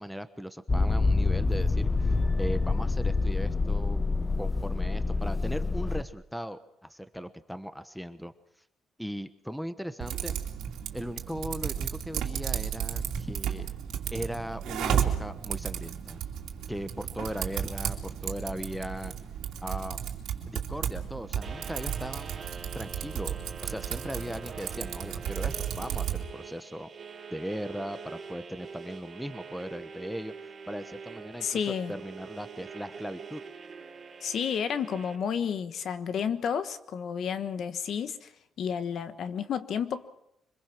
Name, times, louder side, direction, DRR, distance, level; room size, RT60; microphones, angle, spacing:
voice 1, 0.0-2.1 2.4-4.0 4.4-8.3 9.0-10.4 10.9-13.7 14.1-16.2 16.7-19.1 19.6-20.0 20.5-22.4 22.7-23.4 23.6-26.9 27.3-31.6 31.9-33.4, equal, ahead, 1.1 m, -38 dB
Motor vehicle (road), 0.7-6.0, left 3 dB, 25° left, 1.1 m, -26 dB
Typing, 10.0-26.2, right 9 dB, 80° right, 2.7 m, -33 dB
sound 1, 21.4-35.2, right 5 dB, 35° right, 5.2 m, -45 dB
voice 2, 31.4-32.0 34.2-38.3 38.6-40.1, left 7 dB, 60° left, 1.3 m, -31 dB
25.0 x 21.5 x 6.1 m
cardioid pair, 115°, 0 cm